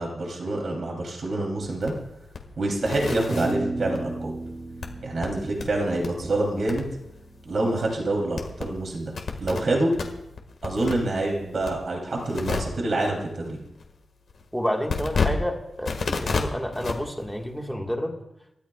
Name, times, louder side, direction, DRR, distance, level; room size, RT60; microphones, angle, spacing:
voice 1, 0.0-1.9 2.6-4.3 5.0-6.9 7.4-9.1 9.4-9.9 10.6-13.6, right 2 dB, 50° right, -1 dB, 3.0 m, -26 dB
sound 1, 1.6-9.6 9.9-17.7, left 4 dB, 60° left, 1.7 m, -34 dB
sound 2, 3.3-7.8, right 2 dB, 25° right, 2.6 m, -34 dB
voice 2, 14.5-18.2, equal, ahead, 1 dB, 1.6 m, -29 dB
28.5 x 13.0 x 2.3 m, 0.86 s
wide cardioid pair, 165°, 0 cm